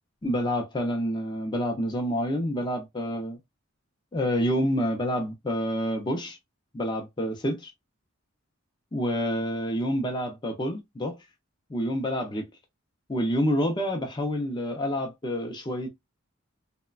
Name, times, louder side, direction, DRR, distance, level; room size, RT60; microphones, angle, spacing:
voice 1, 0.2-3.4 4.1-6.4 6.7-7.7 8.9-11.2 11.7-12.5 13.1-15.9, equal, 20° left, 0.5 m, -28 dB
3.1 x 2.1 x 2.3 m
head